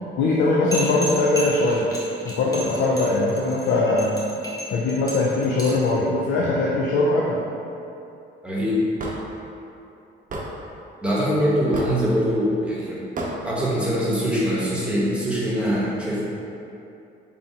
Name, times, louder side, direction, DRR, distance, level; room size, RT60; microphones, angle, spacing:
voice 1, 0.2-1.9 2.2-4.1 4.7-7.4, left 2 dB, 80° left, -4 dB, 0.5 m, -21 dB
sound 1, 0.7-5.9, equal, 15° left, 0.9 m, -33 dB
voice 2, 8.4-8.8 11.0-13.0 13.4-16.2, equal, 5° right, -7 dB, 1.0 m, -23 dB
Hammer / Wood, 9.0-9.2 10.3-10.5 11.7-12.0 13.2-13.3, right 2 dB, 40° right, 0.7 m, -30 dB
4.1 x 3.4 x 2.8 m, 2.8 s
cardioid pair, 90°, 20 cm